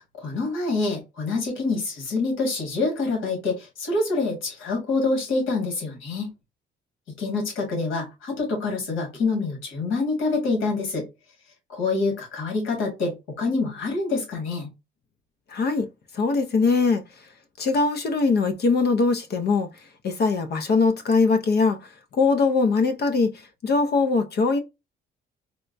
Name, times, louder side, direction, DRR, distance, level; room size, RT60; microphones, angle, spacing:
voice 1, 0.0-6.3 7.1-11.1 11.7-14.7, left 3 dB, 80° left, 1.9 m, -26 dB
voice 2, 15.5-15.9 16.1-17.0 17.6-19.7 20.0-21.8 22.1-24.6, left 4 dB, 55° left, 0.7 m, -21 dB
4.3 x 2.2 x 2.6 m
cardioid pair, 90°, 20 cm